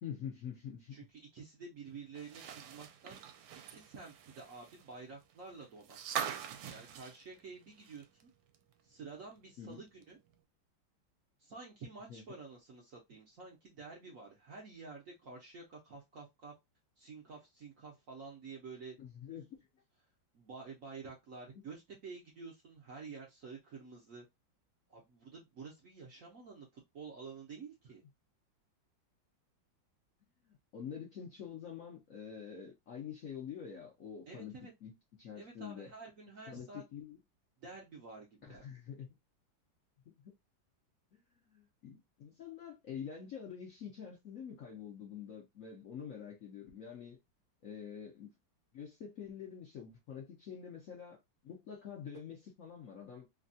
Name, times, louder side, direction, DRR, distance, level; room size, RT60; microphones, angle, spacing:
voice 1, 0.0-1.0 9.6-9.8 12.1-12.2 19.0-19.6 30.5-34.5 34.8-34.9 35.2-35.9 36.5-37.2 38.5-39.1 40.1-40.2 41.1-41.2 41.5-47.2 47.6-48.3 48.7-51.2 51.4-53.2, left 8 dB, 65° left, 0.9 m, -46 dB
voice 2, 0.9-3.2 3.7-6.3 6.7-8.3 8.8-10.2 11.4-16.5 17.0-19.0 20.3-24.3 24.9-28.0 34.3-34.7 35.3-36.8 37.6-38.6, right 4 dB, 60° right, 0.9 m, -50 dB
sound 1, 2.2-8.2 8.5-8.6 10.0-10.1, right 9 dB, 80° right, 1.3 m, -43 dB
3.3 x 2.2 x 2.6 m
omnidirectional pair, 2.1 m